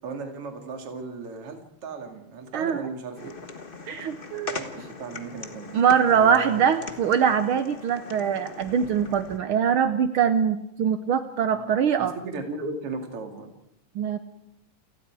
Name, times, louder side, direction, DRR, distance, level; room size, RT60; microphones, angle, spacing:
voice 1, 0.0-3.3 5.0-5.7 6.1-6.9 11.5-11.7 12.0-13.5, right 3 dB, 45° right, 4 dB, 3.3 m, -36 dB
voice 2, 2.5-2.9 3.9-4.6 5.7-12.1 13.9-14.2, right 7 dB, 85° right, 9 dB, 1.1 m, -23 dB
sound 1, 3.2-9.4, left 3 dB, 55° left, 0.5 m, -40 dB
29.0 x 18.5 x 4.8 m, 0.79 s
omnidirectional pair, 3.6 m